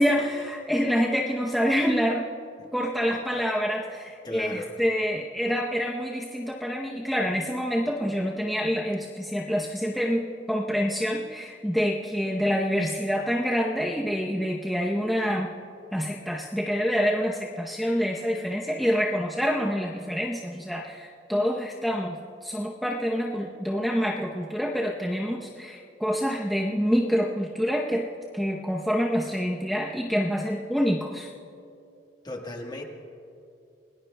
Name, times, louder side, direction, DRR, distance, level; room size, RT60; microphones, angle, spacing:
voice 1, 0.0-2.3 2.7-15.5 15.9-22.2 22.4-28.1 28.3-31.3, equal, ahead, -3 dB, 0.7 m, -27 dB
voice 2, 4.2-4.7 32.2-32.8, left 1 dB, 25° left, 2 dB, 1.4 m, -36 dB
30.0 x 19.0 x 2.2 m, 2.5 s
head